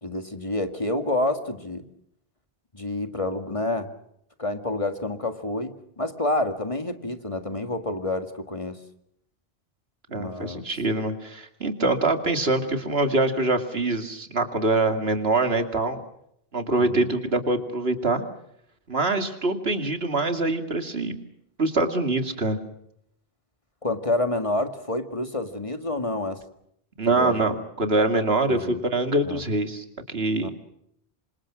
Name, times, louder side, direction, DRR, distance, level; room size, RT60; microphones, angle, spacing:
voice 1, 0.0-1.9 2.7-3.9 4.4-8.8 10.1-10.6 16.8-17.1 23.8-26.4 27.1-27.6 28.5-28.8 29.3-29.4 30.4-30.5, left 2 dB, 30° left, 8 dB, 2.0 m, -28 dB
voice 2, 10.1-16.0 16.5-18.2 18.9-21.1 21.6-22.6 27.0-30.5, right 2 dB, 80° right, 7 dB, 2.8 m, -24 dB
28.0 x 26.0 x 6.2 m, 0.74 s
omnidirectional pair, 1.0 m